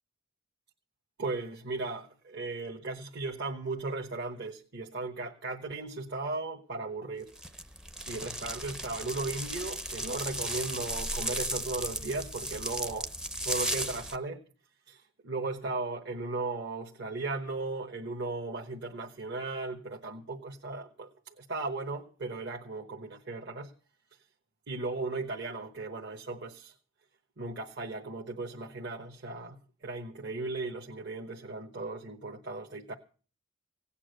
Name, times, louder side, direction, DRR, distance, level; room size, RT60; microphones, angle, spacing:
voice 1, 1.2-7.3 8.1-13.1 13.4-14.4 14.9-23.7 24.7-26.7 27.4-32.9, right 3 dB, 55° right, 1.2 m, -36 dB
sound 1, 7.4-14.2, equal, 5° right, 0.6 m, -35 dB
17.0 x 8.7 x 6.5 m
head